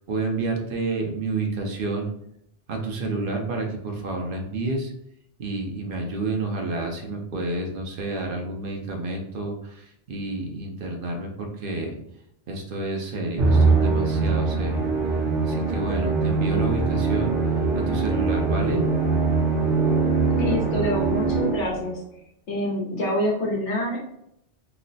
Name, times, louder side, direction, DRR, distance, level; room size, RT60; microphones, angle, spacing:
voice 1, 0.1-2.1 2.7-4.9 5.4-12.0 12.5-14.9 15.4-18.9, right 2 dB, 55° right, 1 dB, 0.8 m, -29 dB
Musical instrument, 13.4-21.9, right 4 dB, 90° right, 1.0 m, -22 dB
voice 2, 20.3-22.0 22.5-24.0, left 1 dB, 75° left, -3 dB, 1.1 m, -26 dB
3.0 x 2.1 x 3.9 m, 0.75 s
omnidirectional pair, 1.2 m